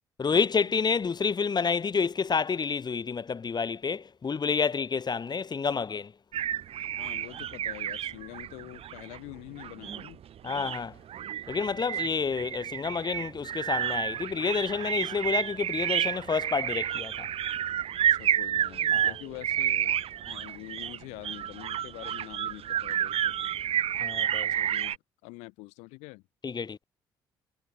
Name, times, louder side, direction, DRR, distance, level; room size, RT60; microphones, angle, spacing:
voice 1, 0.2-6.1 10.4-11.0 11.5-17.3 18.9-19.1 24.0-24.5 26.4-26.8, left 5 dB, 35° left, 5.3 m, -29 dB
sound 1, 6.3-25.0, right 10 dB, 55° right, 6.3 m, -30 dB
voice 2, 7.0-10.2 11.9-12.0 18.1-20.0 20.3-23.5 24.5-25.0 25.2-26.2, left 26 dB, 75° left, 6.6 m, -45 dB
hypercardioid pair, 50°, 12 cm